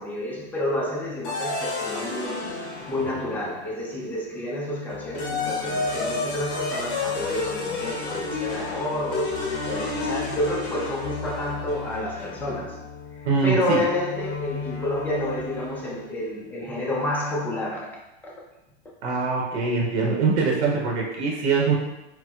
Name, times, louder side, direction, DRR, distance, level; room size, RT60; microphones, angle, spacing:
voice 1, 0.0-2.5 2.9-9.3 9.7-12.8 13.1-17.9 18.2-18.3, left 1 dB, 5° left, -3 dB, 0.4 m, -29 dB
sound 1, 1.2-3.8 4.9-16.0, left 3 dB, 45° left, 0.7 m, -31 dB
voice 2, 13.3-13.8 19.0-21.7, right 4 dB, 80° right, -1 dB, 0.8 m, -23 dB
4.1 x 2.0 x 2.3 m, 0.93 s
supercardioid pair, 130°, 33 cm